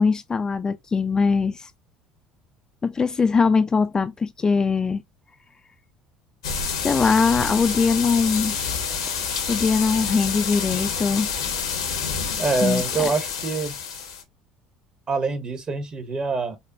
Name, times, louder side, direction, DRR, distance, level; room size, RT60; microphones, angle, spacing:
voice 1, 0.0-1.7 2.8-5.0 6.8-8.6 9.5-11.3 12.6-13.1, left 5 dB, 25° left, 0.3 m, -21 dB
sound 1, 6.4-14.2, left 6 dB, 80° left, 0.9 m, -28 dB
voice 2, 12.4-13.7 15.1-16.6, right 3 dB, 35° right, 1.0 m, -25 dB
5.3 x 2.2 x 2.5 m
figure-of-eight pair, 60°, 3 cm